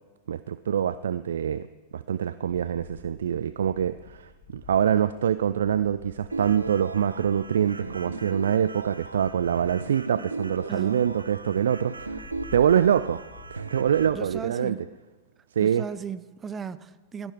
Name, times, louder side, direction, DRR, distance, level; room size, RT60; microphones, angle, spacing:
voice 1, 0.3-1.7 1.9-13.2 13.5-14.8 15.6-15.9, right 9 dB, 65° right, 0.4 m, -25 dB
sound 1, 2.7-14.5, left 5 dB, 55° left, 5.6 m, -50 dB
sound 2, 6.3-14.1, right 3 dB, 85° right, 0.9 m, -37 dB
voice 2, 10.7-11.1 14.1-14.8 15.6-17.3, right 6 dB, 20° right, 0.7 m, -36 dB
17.0 x 13.5 x 4.8 m
figure-of-eight pair, 95°, 0 cm